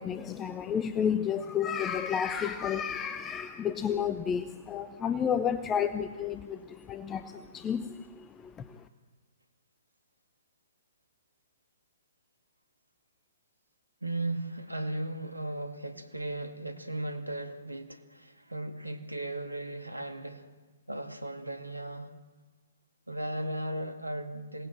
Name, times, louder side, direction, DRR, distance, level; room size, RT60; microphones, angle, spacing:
voice 1, 0.0-8.8, left 8 dB, 15° left, 11 dB, 0.8 m, -31 dB
voice 2, 14.0-20.5 20.9-22.1 23.1-24.7, right 1 dB, 85° right, 7 dB, 2.2 m, -36 dB
27.0 x 18.5 x 7.7 m, 1.3 s
figure-of-eight pair, 125°, 0 cm